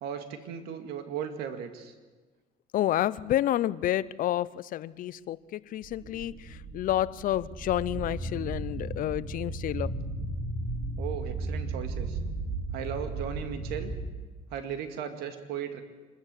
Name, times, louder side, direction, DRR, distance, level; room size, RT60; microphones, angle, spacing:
voice 1, 0.0-1.9 11.0-12.2 12.7-13.9 14.5-15.8, right 8 dB, 90° right, 7 dB, 2.2 m, -36 dB
voice 2, 2.7-6.3 6.7-9.9, left 13 dB, 60° left, 19 dB, 0.6 m, -29 dB
sound 1, 5.8-14.1, right 2 dB, 45° right, 5.8 m, -35 dB
25.5 x 14.0 x 8.3 m, 1.3 s
cardioid pair, 115°, 16 cm